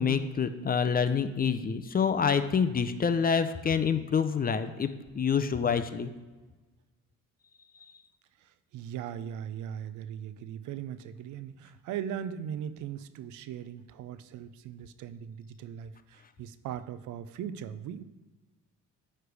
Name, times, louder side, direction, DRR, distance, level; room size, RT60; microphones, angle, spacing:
voice 1, 0.0-4.9 5.1-6.1, left 6 dB, 30° left, 10 dB, 0.5 m, -27 dB
voice 2, 8.4-18.0, right 9 dB, 80° right, 13 dB, 0.5 m, -39 dB
9.3 x 3.4 x 5.1 m, 1.2 s
cardioid pair, 90°, 30 cm